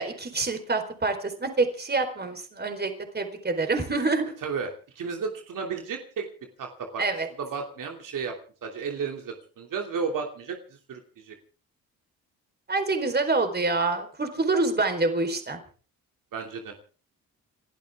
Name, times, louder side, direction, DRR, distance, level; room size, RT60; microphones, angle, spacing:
voice 1, 0.0-4.3 7.0-7.3 12.7-15.6, right 3 dB, 30° right, 7 dB, 4.3 m, -26 dB
voice 2, 4.4-6.3 6.6-7.0 7.4-10.6 10.9-11.4 16.3-16.7, right 5 dB, 65° right, 3 dB, 2.9 m, -33 dB
29.5 x 12.0 x 3.6 m, 0.40 s
cardioid pair, 75°, 35 cm